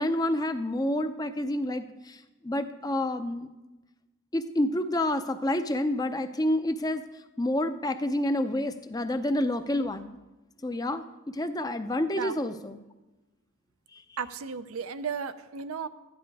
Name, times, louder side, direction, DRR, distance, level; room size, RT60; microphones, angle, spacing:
voice 1, 0.0-3.5 4.3-7.0 7.4-10.1 10.6-12.8, left 1 dB, 20° left, 9 dB, 0.5 m, -28 dB
voice 2, 14.2-15.9, right 6 dB, 90° right, 11 dB, 0.6 m, -34 dB
12.5 x 10.5 x 4.7 m, 1.1 s
head